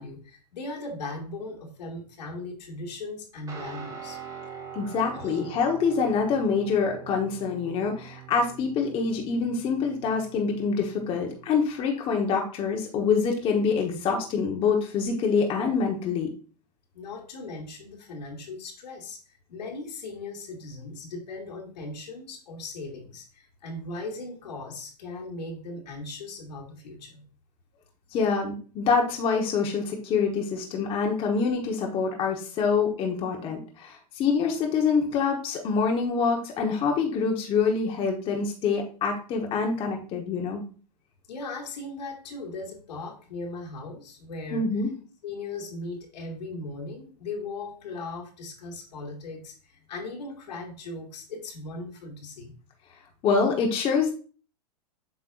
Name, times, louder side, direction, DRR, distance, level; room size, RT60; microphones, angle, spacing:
voice 1, 0.0-4.2 5.1-5.4 16.9-27.2 41.3-44.6 45.2-52.5, left 2 dB, 85° left, 0 dB, 2.3 m, -38 dB
Guitar, 3.5-11.6, right 7 dB, 15° right, 1.7 m, -44 dB
voice 2, 4.7-16.3 28.1-40.6 44.5-44.9 53.2-54.1, left 5 dB, 25° left, 1 dB, 1.1 m, -26 dB
7.7 x 5.6 x 2.5 m, 0.39 s
supercardioid pair, 150°, 21 cm